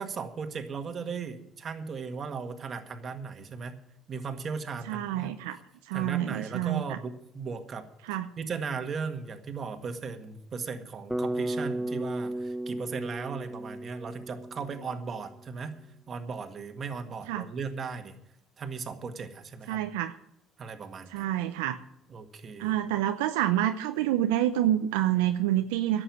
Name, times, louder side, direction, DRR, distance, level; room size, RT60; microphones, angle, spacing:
voice 1, 0.0-3.8 4.1-5.6 5.9-7.9 8.4-15.7 16.1-18.2 18.6-19.8 20.6-21.3 22.1-22.8, right 5 dB, 45° right, 7 dB, 1.7 m, -37 dB
voice 2, 4.9-5.6 5.9-7.0 8.0-8.3 17.3-17.4 19.7-20.1 21.1-21.8 22.6-26.0, right 12 dB, 85° right, 8 dB, 0.6 m, -27 dB
Bass guitar, 11.1-15.2, right 1 dB, 5° right, 0.9 m, -34 dB
11.5 x 7.9 x 9.4 m, 0.81 s
hypercardioid pair, 70°, 0 cm